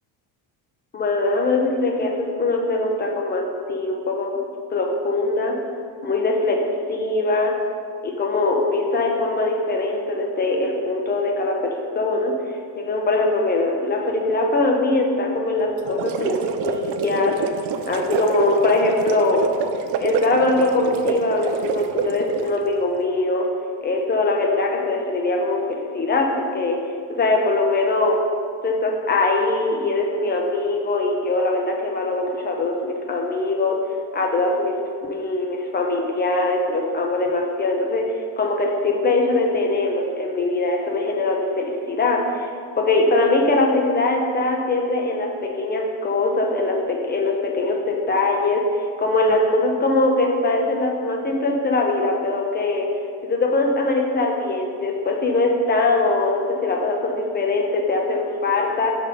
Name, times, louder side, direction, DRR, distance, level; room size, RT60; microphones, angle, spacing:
voice 1, 0.9-4.3 4.7-5.6 6.0-6.6 6.9-7.5 8.0-12.4 12.8-17.4 17.9-19.4 20.0-23.5 23.8-26.8 27.2-28.2 28.6-33.8 34.1-34.7 35.1-52.9 53.2-58.9, left 2 dB, 20° left, 1 dB, 0.8 m, -22 dB
sound 1, 15.8-22.6, right 7 dB, 65° right, 0.5 m, -27 dB
6.0 x 4.1 x 5.2 m, 2.2 s
cardioid pair, 140°, 44 cm